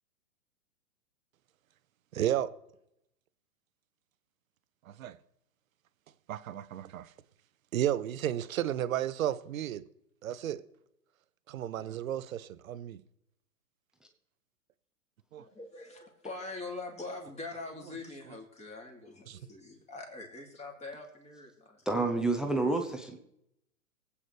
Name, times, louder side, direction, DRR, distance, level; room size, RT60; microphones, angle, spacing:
voice 1, 2.1-2.5 4.9-5.2 6.3-7.1 7.7-9.8 10.2-10.6 11.5-13.0 15.3-15.4 18.3-18.4 19.3-19.4, right 11 dB, 65° right, 0.8 m, -33 dB
voice 2, 15.4-21.8, left 3 dB, 15° left, 2.8 m, -43 dB
voice 3, 21.9-23.2, right 2 dB, ahead, 0.8 m, -29 dB
23.0 x 8.5 x 3.3 m
hypercardioid pair, 115°, 44 cm